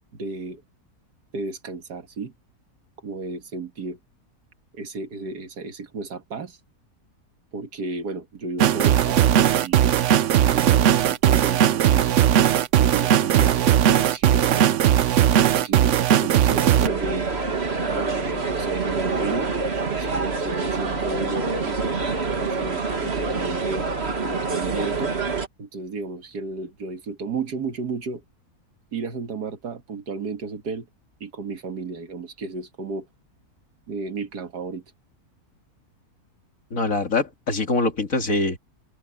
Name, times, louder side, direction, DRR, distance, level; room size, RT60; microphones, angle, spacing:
voice 1, 0.1-0.6 1.3-2.3 3.0-4.0 4.7-6.6 7.5-9.8 10.4-12.2 12.8-14.9 15.4-17.3 17.9-19.5 19.9-21.8 22.4-23.8 24.2-25.1 25.6-28.2 28.9-30.9 31.2-33.1 33.9-34.8, right 4 dB, 90° right, 2.4 m, -33 dB
sound 1, 8.6-16.9, right 10 dB, 60° right, 0.9 m, -18 dB
sound 2, 16.8-25.5, right 4 dB, 40° right, 2.2 m, -26 dB
voice 2, 36.7-38.6, left 3 dB, 55° left, 2.9 m, -23 dB
open air
omnidirectional pair, 1.7 m